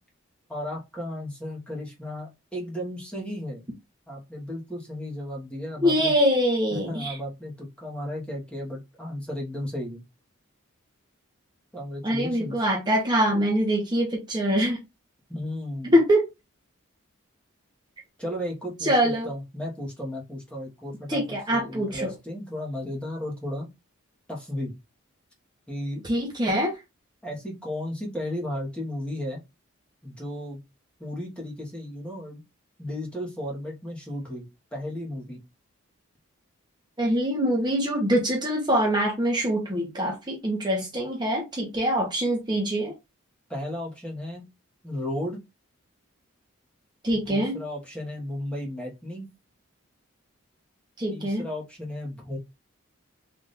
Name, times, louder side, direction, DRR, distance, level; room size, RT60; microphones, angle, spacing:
voice 1, 0.5-3.6 4.1-6.1 6.7-10.0 11.7-12.6 15.3-16.0 18.2-23.7 24.3-24.7 25.7-26.0 27.2-29.4 30.0-30.6 31.0-32.4 32.8-35.4 43.5-44.4 44.8-45.4 47.1-49.3 51.1-52.4, left 1 dB, 5° left, 1.1 m, -34 dB
voice 2, 5.8-7.2 12.0-14.8 15.9-16.3 18.8-19.3 21.1-22.1 26.0-26.7 37.0-42.9 47.0-47.5 51.0-51.4, equal, 20° right, 0.9 m, -24 dB
3.4 x 2.6 x 4.0 m
head